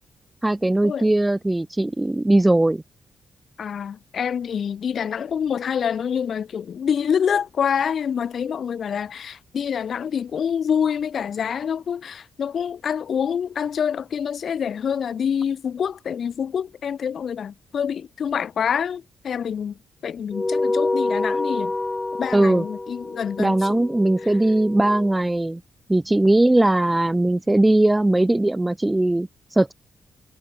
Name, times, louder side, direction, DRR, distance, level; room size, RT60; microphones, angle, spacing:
voice 1, 0.4-2.8 22.3-22.6 23.4-25.6 25.9-29.7, right 1 dB, 10° right, 1.2 m, -19 dB
voice 2, 3.6-21.7 22.2-23.8 24.2-24.3, left 7 dB, 60° left, 3.3 m, -26 dB
sound 1, 20.3-25.1, left 2 dB, 20° left, 4.4 m, -27 dB
cardioid pair, 95°, 0 cm